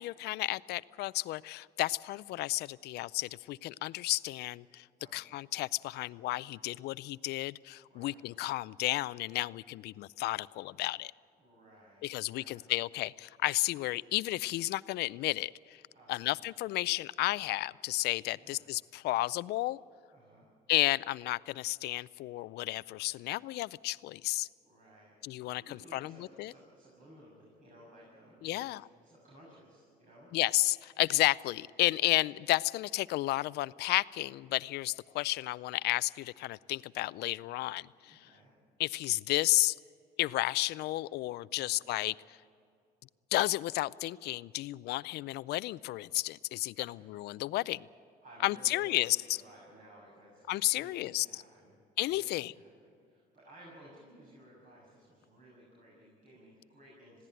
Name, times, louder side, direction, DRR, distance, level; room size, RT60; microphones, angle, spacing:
voice 1, 0.0-4.9 5.1-11.1 12.0-15.8 16.1-19.8 20.7-24.5 25.2-26.5 28.4-28.8 30.3-38.3 38.8-39.8 40.2-42.2 43.3-47.9 48.4-49.2 50.5-51.4 52.0-52.5, left 17 dB, 75° left, 19 dB, 0.5 m, -32 dB
voice 2, 5.0-5.3 7.9-8.2 11.4-12.7 15.9-16.3 18.3-18.6 20.1-20.5 24.6-28.7 29.0-30.3 38.0-38.5 41.5-41.8 46.8-47.1 48.2-50.4 50.7-51.7 52.1-57.2, right 1 dB, 50° right, -4 dB, 6.7 m, -57 dB
21.0 x 16.0 x 9.1 m, 2.3 s
cardioid pair, 110°, 17 cm